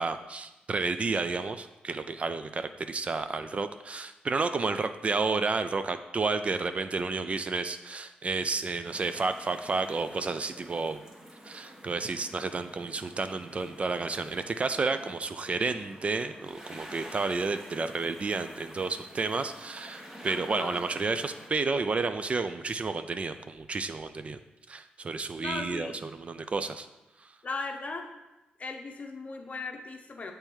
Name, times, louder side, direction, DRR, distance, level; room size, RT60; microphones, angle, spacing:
voice 1, 0.0-11.0 11.4-24.4 24.7-26.9 27.2-27.3, right 4 dB, 40° right, 10 dB, 0.3 m, -31 dB
sound 1, 8.8-21.5, equal, 20° right, 1.2 m, -48 dB
voice 2, 20.3-20.8 25.4-26.0 27.4-28.1 28.6-30.3, left 3 dB, 45° left, 4 dB, 0.8 m, -37 dB
7.1 x 3.3 x 4.5 m, 1.0 s
cardioid pair, 80°, 3 cm